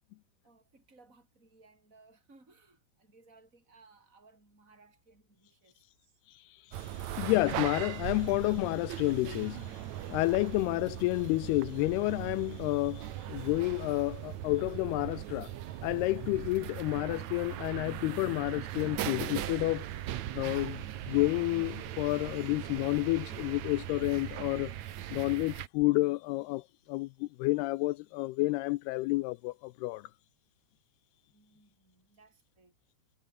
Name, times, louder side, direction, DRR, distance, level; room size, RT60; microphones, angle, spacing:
voice 1, 0.4-6.2 31.3-32.7, right 3 dB, 15° right, 7.9 m, -62 dB
voice 2, 6.3-15.5 15.8-19.8 20.4-24.7 25.1-30.1, left 21 dB, 85° left, 2.4 m, -30 dB
sound 1, 6.7-25.7, right 12 dB, 75° right, 1.7 m, -39 dB
omnidirectional pair, 4.9 m